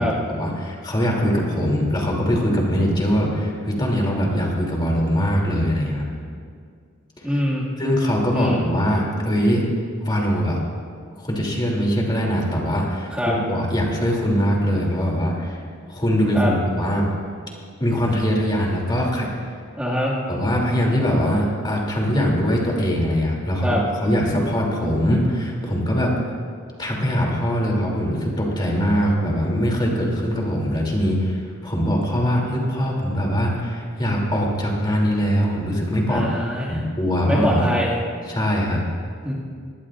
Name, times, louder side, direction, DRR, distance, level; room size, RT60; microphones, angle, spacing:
voice 1, 0.3-6.1 7.3-7.4 7.8-9.6 10.0-10.6 11.2-15.6 15.9-17.1 17.8-19.3 20.3-26.1 26.8-36.4 36.7-37.7 38.3-38.8, equal, 20° left, -2 dB, 2.9 m, -22 dB
voice 2, 7.2-7.7 8.3-8.6 13.1-13.3 16.3-16.5 19.8-20.1 23.6-23.8 36.1-36.8 37.2-38.0 39.2-39.3, equal, 5° right, -7 dB, 2.0 m, -23 dB
22.5 x 19.5 x 2.5 m, 2.1 s
head